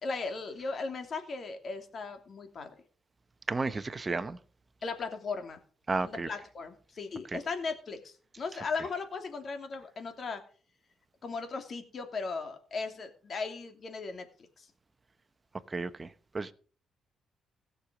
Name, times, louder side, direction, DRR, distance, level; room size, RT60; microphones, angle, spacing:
voice 1, 0.0-2.7 4.8-5.6 6.0-10.4 11.2-14.3 14.6-14.7, left 4 dB, 45° left, 2.8 m, -37 dB
voice 2, 3.5-4.4 5.9-6.3 15.7-16.5, right 3 dB, 25° right, 1.0 m, -33 dB
16.5 x 6.7 x 6.2 m
cardioid pair, 90°, 0 cm